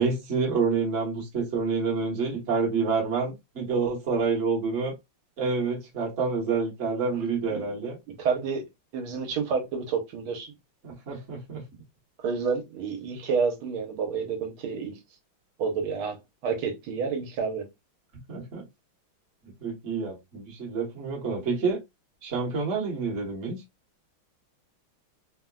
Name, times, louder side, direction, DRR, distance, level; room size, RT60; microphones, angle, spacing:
voice 1, 0.0-4.9 5.4-8.0 10.8-11.6 18.3-18.6 19.6-21.8 22.2-23.6, right 4 dB, 40° right, 1.2 m, -28 dB
voice 2, 8.2-8.6 8.9-10.5 12.2-15.0 15.6-17.7, right 5 dB, 80° right, 1.6 m, -29 dB
3.8 x 2.1 x 2.2 m
omnidirectional pair, 2.3 m